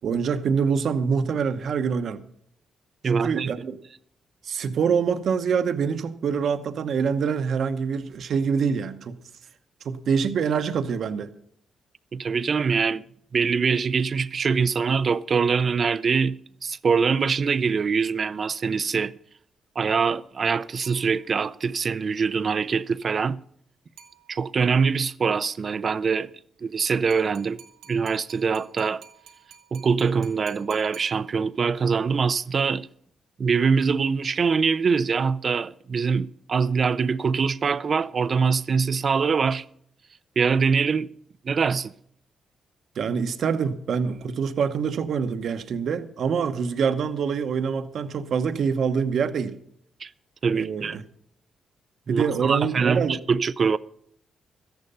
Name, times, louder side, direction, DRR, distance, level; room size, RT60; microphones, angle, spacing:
voice 1, 0.0-2.2 3.1-3.8 4.4-9.2 9.8-11.3 43.0-49.5 50.5-51.0 52.1-53.2, right 6 dB, 65° right, 0.9 m, -25 dB
voice 2, 3.0-3.5 12.1-13.0 13.3-16.4 16.6-19.1 19.8-23.4 24.3-26.3 26.6-27.6 27.9-29.0 29.7-32.9 33.4-39.6 40.4-41.1 41.4-41.9 50.0-50.1 50.4-51.0 52.1-53.8, right 5 dB, 45° right, 0.5 m, -23 dB
sound 1, 20.8-21.7 24.0-24.7 27.1-31.7, right 7 dB, 80° right, 2.2 m, -51 dB
13.5 x 10.5 x 5.5 m
cardioid pair, 85°, 0 cm